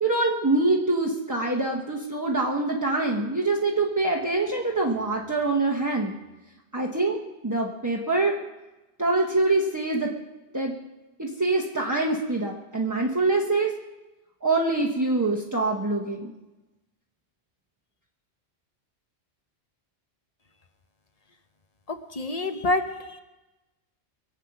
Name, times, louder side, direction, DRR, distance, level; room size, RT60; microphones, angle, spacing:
voice 1, 0.0-6.2 6.7-7.2 7.4-8.4 9.0-10.1 10.5-10.8 11.2-13.7 14.4-16.3, right 2 dB, 15° right, -3 dB, 1.1 m, -25 dB
voice 2, 21.9-23.2, left 2 dB, 35° left, 8 dB, 1.0 m, -28 dB
23.0 x 8.2 x 6.0 m, 1.1 s
omnidirectional pair, 1.1 m